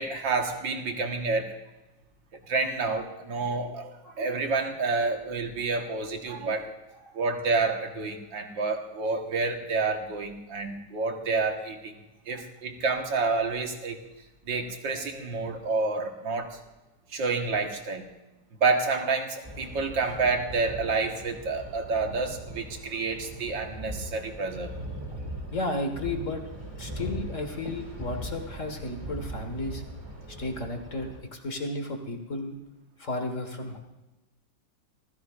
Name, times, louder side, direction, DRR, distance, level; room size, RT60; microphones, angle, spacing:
voice 1, 0.0-1.5 2.5-6.7 7.1-11.9 12.3-14.0 14.5-16.6 17.1-18.1 18.6-24.7 30.3-30.4, right 3 dB, 80° right, 3 dB, 2.2 m, -29 dB
sound 1, 19.4-31.2, right 1 dB, 20° right, 2.2 m, -40 dB
voice 2, 25.5-26.4 26.8-29.8 30.4-32.6 33.0-33.8, left 2 dB, 45° left, 5 dB, 1.9 m, -33 dB
26.0 x 16.0 x 2.5 m, 1.0 s
omnidirectional pair, 2.0 m